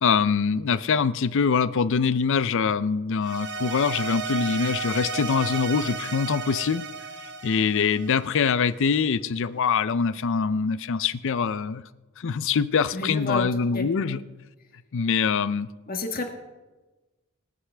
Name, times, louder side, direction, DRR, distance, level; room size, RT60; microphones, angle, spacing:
voice 1, 0.0-6.8 7.4-11.8 12.2-14.2 14.9-15.7, left 5 dB, 60° left, 15 dB, 0.5 m, -24 dB
sound 1, 3.2-8.5, right 5 dB, 55° right, 0.8 m, -33 dB
voice 2, 12.9-13.5 13.7-14.2 15.9-16.3, left 2 dB, 45° left, 3 dB, 1.5 m, -31 dB
24.5 x 8.1 x 3.4 m, 1.2 s
head